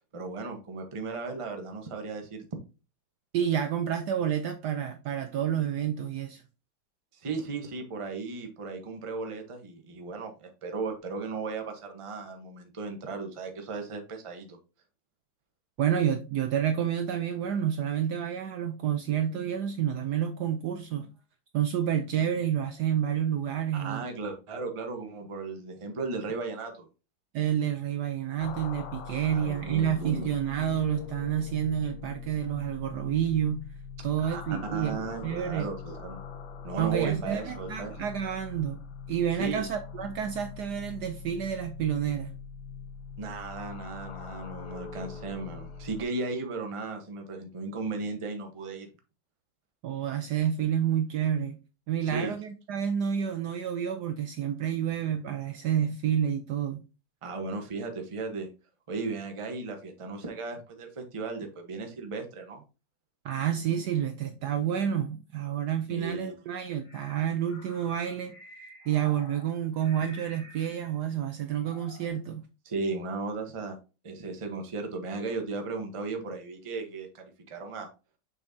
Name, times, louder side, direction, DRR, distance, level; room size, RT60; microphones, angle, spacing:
voice 1, 0.1-2.5 7.1-14.6 23.7-26.9 29.2-30.3 34.2-36.2 36.6-37.9 39.4-39.7 43.2-48.9 52.0-52.3 57.2-58.5 58.9-62.6 65.9-66.3 72.6-73.8 74.0-77.9, right 3 dB, 25° right, 0.7 m, -36 dB
voice 2, 3.3-6.4 15.8-21.1 21.5-24.0 27.3-33.6 34.0-35.7 36.8-38.8 39.1-42.3 49.8-51.6 51.9-56.8 63.2-68.3 68.9-72.4, right 9 dB, 70° right, 1.0 m, -29 dB
sound 1, 28.4-46.0, left 6 dB, 75° left, 1.5 m, -43 dB
sound 2, 66.6-71.0 71.4-72.1, equal, 25° left, 2.8 m, -51 dB
6.6 x 5.5 x 2.7 m
omnidirectional pair, 2.2 m